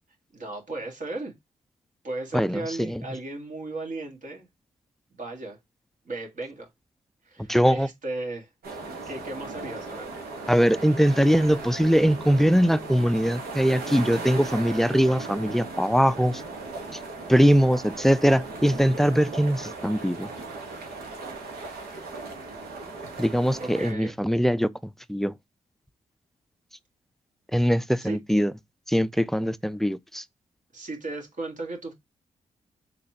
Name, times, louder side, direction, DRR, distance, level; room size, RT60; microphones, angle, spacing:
voice 1, 0.3-1.3 2.0-4.5 5.1-5.6 6.1-6.7 7.3-8.5 9.1-10.1 23.6-24.2 28.0-28.2 30.7-31.9, right 2 dB, 55° right, 1.6 m, -35 dB
voice 2, 2.3-3.0 7.5-7.9 10.5-16.4 17.3-20.3 23.2-24.7 25.1-25.3 27.5-28.5 28.9-30.2, equal, ahead, 0.4 m, -22 dB
sound 1, 8.6-23.9, right 3 dB, 85° right, 1.1 m, -37 dB
4.0 x 3.0 x 2.7 m
supercardioid pair, 50°, 15 cm